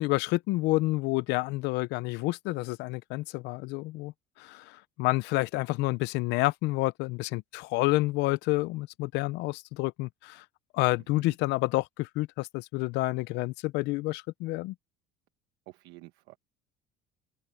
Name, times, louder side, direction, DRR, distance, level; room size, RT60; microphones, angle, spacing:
voice 1, 0.0-10.4 10.7-14.7, left 21 dB, 70° left, 0.6 m, -29 dB
voice 2, 15.7-16.4, right 19 dB, 85° right, 1.2 m, -50 dB
open air
cardioid pair, 160°, 18 cm